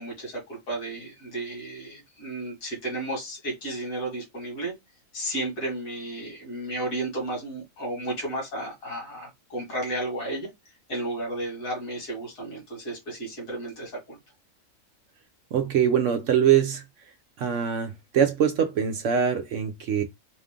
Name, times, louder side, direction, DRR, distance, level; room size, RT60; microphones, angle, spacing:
voice 1, 0.0-4.7 5.1-10.5 10.9-14.2, right 1 dB, 75° left, 2.4 m, -33 dB
voice 2, 15.5-16.8 17.4-20.0, right 8 dB, 65° right, 0.9 m, -23 dB
4.1 x 2.5 x 3.6 m
omnidirectional pair, 1.5 m